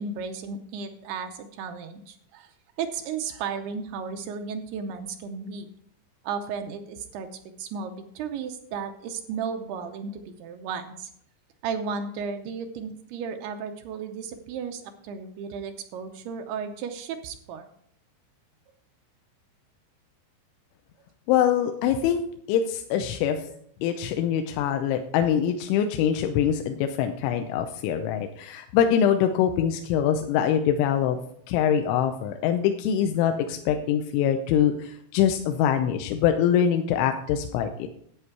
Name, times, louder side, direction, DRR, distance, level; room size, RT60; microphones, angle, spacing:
voice 1, 0.0-2.5 2.8-5.7 6.2-11.1 11.6-17.7, right 6 dB, 80° right, 6 dB, 2.4 m, -34 dB
voice 2, 21.3-22.2 22.5-23.4 23.8-31.2 31.5-37.9, left 9 dB, 85° left, 6 dB, 3.1 m, -24 dB
11.5 x 8.2 x 4.6 m, 0.67 s
omnidirectional pair, 5.4 m